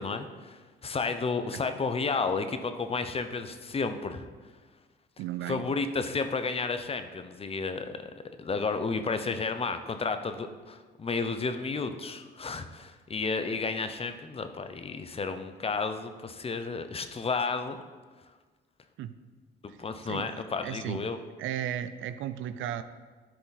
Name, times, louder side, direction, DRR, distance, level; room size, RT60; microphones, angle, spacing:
voice 1, 0.0-4.3 5.5-8.1 8.4-17.8 19.8-21.2, left 4 dB, 30° left, 9 dB, 0.6 m, -32 dB
voice 2, 5.2-5.6 19.0-19.1 19.7-19.8 20.1-21.1 21.4-22.8, right 11 dB, 80° right, 12 dB, 0.5 m, -35 dB
12.0 x 4.9 x 4.1 m, 1.4 s
cardioid pair, 90°, 20 cm